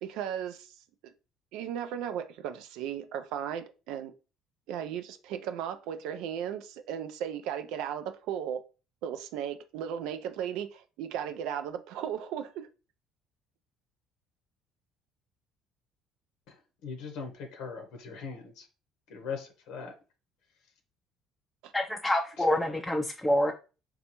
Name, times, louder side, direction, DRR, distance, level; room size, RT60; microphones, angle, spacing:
voice 1, 0.0-0.7 1.5-4.1 4.7-8.6 9.0-12.7 21.6-21.7, right 9 dB, 75° right, 0.4 m, -36 dB
voice 2, 16.8-18.6 19.1-19.9 22.6-22.8, left 5 dB, 80° left, 0.8 m, -40 dB
voice 3, 21.7-23.5, left 1 dB, 10° left, 0.5 m, -27 dB
4.0 x 2.3 x 2.9 m
supercardioid pair, 75°, 0 cm